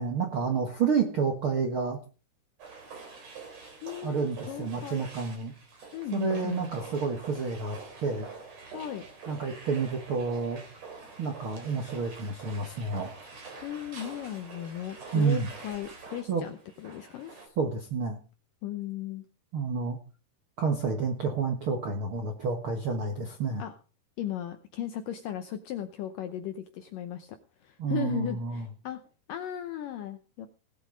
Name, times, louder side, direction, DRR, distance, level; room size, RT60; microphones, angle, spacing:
voice 1, 0.0-2.0 4.0-5.5 6.1-8.3 9.3-10.6 11.2-13.1 15.1-15.5 16.3-16.4 17.6-18.2 19.5-20.0 20.6-23.6 27.8-28.6, right 5 dB, 65° right, 3 dB, 1.3 m, -29 dB
sound 1, 2.6-17.5, right 4 dB, 40° right, 4.6 m, -46 dB
voice 2, 3.8-5.1 5.9-6.7 8.7-9.0 13.6-17.3 18.6-19.3 23.6-23.7 24.2-29.0 29.3-30.5, left 11 dB, 75° left, 8 dB, 2.0 m, -36 dB
18.5 x 8.2 x 5.1 m, 0.36 s
omnidirectional pair, 4.8 m